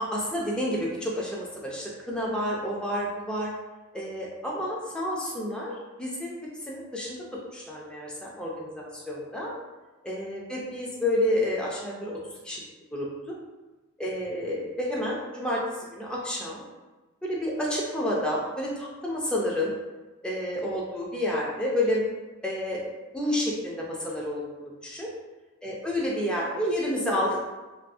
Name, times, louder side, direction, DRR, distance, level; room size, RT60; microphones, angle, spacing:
voice 1, 0.0-3.5 3.9-5.7 6.0-6.4 6.7-7.2 7.5-9.5 10.0-12.6 12.9-13.3 14.0-16.6 17.2-19.7 20.2-22.0 22.4-22.8 23.1-25.1 25.6-27.4, left 1 dB, 5° left, -5 dB, 0.3 m, -30 dB
2.5 x 2.4 x 2.3 m, 1.2 s
head